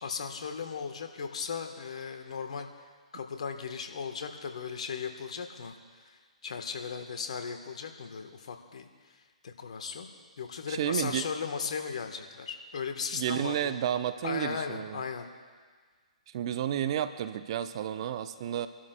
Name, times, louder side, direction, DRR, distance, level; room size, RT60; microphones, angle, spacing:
voice 1, 0.0-2.7 3.1-5.7 6.0-8.9 9.4-10.1 10.4-13.7 14.2-15.3, left 6 dB, 65° left, 5 dB, 1.3 m, -37 dB
voice 2, 10.7-11.3 13.1-15.0 16.3-18.7, right 10 dB, 45° right, 11 dB, 0.6 m, -31 dB
25.0 x 12.5 x 2.3 m, 1.5 s
figure-of-eight pair, 125°, 4 cm